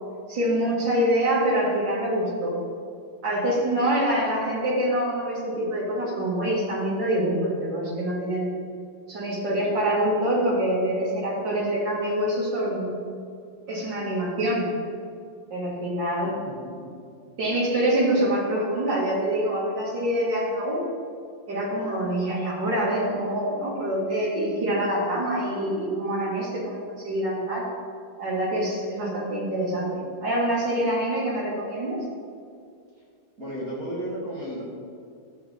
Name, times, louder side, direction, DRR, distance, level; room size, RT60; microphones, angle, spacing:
voice 1, 0.3-2.6 3.2-8.5 9.1-12.9 13.7-14.7 15.5-16.4 17.4-20.8 21.5-27.7 28.2-32.0, right 1 dB, 65° right, -6 dB, 3.3 m, -25 dB
voice 2, 16.4-16.9 33.4-34.6, equal, 45° right, -6 dB, 2.4 m, -33 dB
13.0 x 7.2 x 3.8 m, 2.3 s
omnidirectional pair, 2.1 m